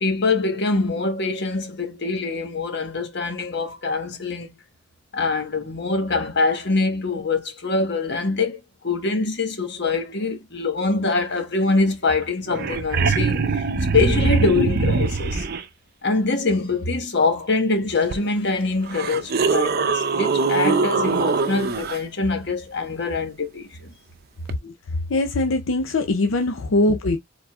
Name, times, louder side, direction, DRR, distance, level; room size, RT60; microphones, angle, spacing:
voice 1, 0.0-4.5 5.1-13.6 13.9-15.5 16.0-23.9, left 3 dB, 55° left, 1.4 m, -24 dB
sound 1, 12.2-12.3 12.5-15.6 18.1-18.2 18.9-22.0 24.5-24.6, right 4 dB, 50° right, 0.6 m, -22 dB
voice 2, 25.1-27.2, left 2 dB, 80° left, 0.6 m, -21 dB
4.7 x 3.9 x 2.4 m
head